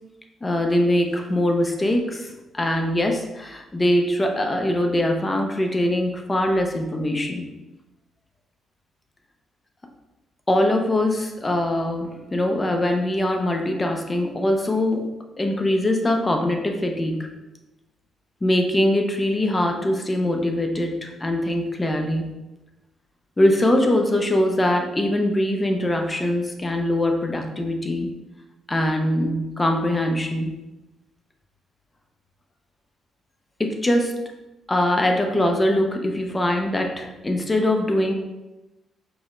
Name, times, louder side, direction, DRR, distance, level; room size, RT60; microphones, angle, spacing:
voice 1, 0.4-7.5 10.5-15.1 15.4-17.3 18.4-22.3 23.4-28.1 28.7-30.5 33.6-34.1 34.7-38.1, left 1 dB, 20° left, 4 dB, 0.6 m, -22 dB
4.8 x 2.1 x 3.7 m, 1.0 s
cardioid pair, 90°, 0 cm